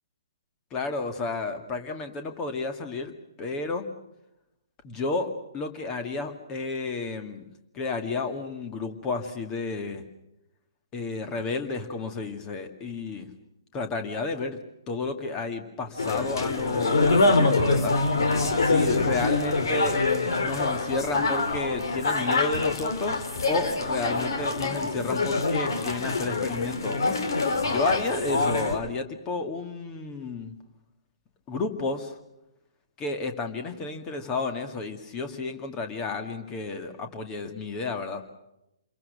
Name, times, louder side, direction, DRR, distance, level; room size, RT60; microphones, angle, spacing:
voice 1, 0.7-3.1 3.4-3.8 4.8-7.5 7.7-10.0 10.9-13.3 13.7-14.6 14.9-17.9 18.6-20.0 20.4-27.0 27.6-30.6 31.5-32.1 33.0-38.2, left 3 dB, 20° left, 7 dB, 2.2 m, -31 dB
sound 1, 16.0-28.8, left 3 dB, 60° left, 3.0 m, -25 dB
28.0 x 23.0 x 6.5 m, 0.87 s
figure-of-eight pair, 125°, 2 cm